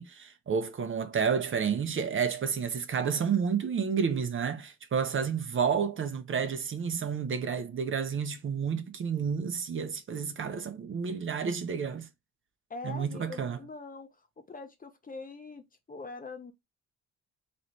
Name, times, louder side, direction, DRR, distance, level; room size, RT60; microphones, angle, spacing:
voice 1, 0.0-12.1 12.8-13.6, right 6 dB, 40° right, 0.8 m, -30 dB
voice 2, 12.7-14.1 14.5-16.5, left 3 dB, 30° left, 0.9 m, -43 dB
3.1 x 3.1 x 4.0 m
cardioid pair, 90°, 30 cm